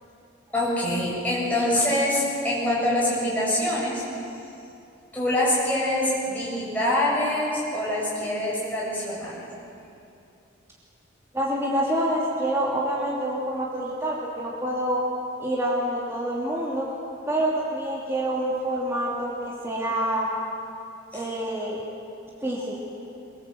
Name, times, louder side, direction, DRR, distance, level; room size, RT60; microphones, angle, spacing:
voice 1, 0.5-4.0 5.1-9.4 21.1-21.2, left 1 dB, 10° left, -7 dB, 7.5 m, -25 dB
voice 2, 11.3-15.0 15.4-16.9 17.3-20.3 21.1-21.8 22.4-22.8, right 1 dB, 15° right, -5 dB, 3.0 m, -27 dB
23.0 x 23.0 x 8.0 m, 2.7 s
head